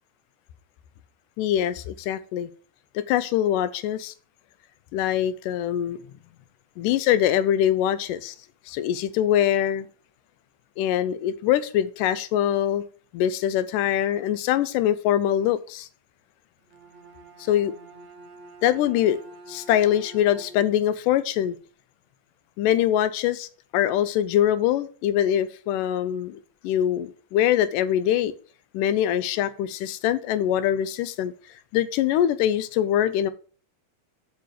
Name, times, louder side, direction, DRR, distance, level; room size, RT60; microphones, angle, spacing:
voice 1, 1.4-2.5 3.0-4.1 4.9-6.0 6.8-8.4 8.7-9.9 10.8-12.8 13.1-15.9 17.4-17.7 18.6-19.2 19.5-21.6 22.6-28.3 28.7-31.3 31.7-33.3, left 11 dB, 80° left, 14 dB, 2.1 m, -23 dB
Bowed string instrument, 16.6-20.9, right 2 dB, 40° right, 0.9 m, -47 dB
6.3 x 5.5 x 6.5 m, 0.41 s
omnidirectional pair, 4.0 m